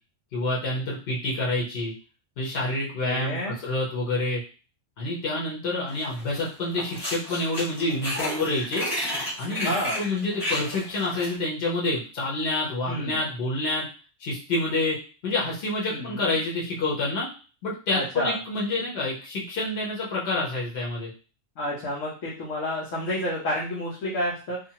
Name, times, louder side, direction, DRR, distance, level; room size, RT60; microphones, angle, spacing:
voice 1, 0.3-1.9 2.4-4.4 5.0-8.9 9.4-9.7 10.0-13.9 14.2-17.3 17.6-21.1, left 2 dB, 60° left, -4 dB, 1.1 m, -28 dB
voice 2, 3.0-3.6 9.6-10.0 12.9-13.2 15.9-16.4 17.9-18.4 21.6-24.6, left 1 dB, 85° left, -5 dB, 1.1 m, -30 dB
sound 1, 6.0-6.5 6.7-11.3, equal, 20° left, 1.3 m, -32 dB
2.6 x 2.4 x 2.8 m, 0.35 s
omnidirectional pair, 1.3 m